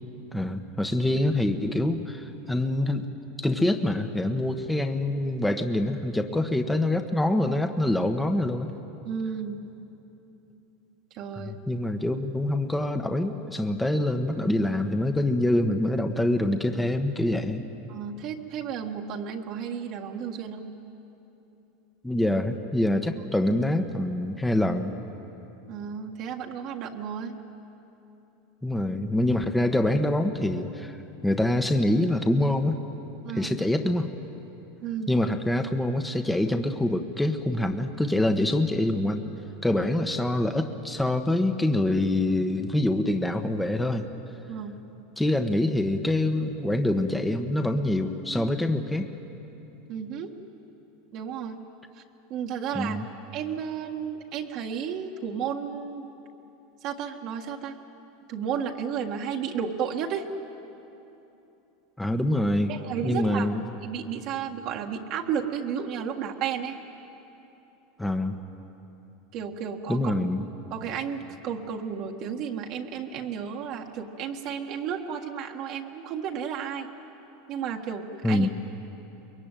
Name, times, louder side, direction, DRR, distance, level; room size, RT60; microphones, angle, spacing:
voice 1, 0.3-3.0 3.4-8.7 11.4-17.6 22.0-24.9 28.6-31.0 31.2-32.8 33.3-34.1 35.1-39.2 39.6-44.0 45.2-49.1 52.7-53.1 62.0-62.7 63.0-63.6 68.0-68.4 69.9-70.5 78.2-78.5, left 1 dB, 5° left, 6 dB, 1.2 m, -25 dB
voice 2, 9.1-9.7 11.1-11.6 17.9-20.7 25.7-27.4 33.2-33.5 34.8-35.2 44.5-44.8 49.9-50.3 51.1-51.6 52.3-53.0 53.3-56.1 56.8-57.8 58.3-60.2 62.7-63.5 63.8-66.8 69.3-70.1 70.7-76.9 77.5-78.5, right 7 dB, 55° right, 1 dB, 1.7 m, -33 dB
24.0 x 22.0 x 9.2 m, 3.0 s
supercardioid pair, 115°, 0 cm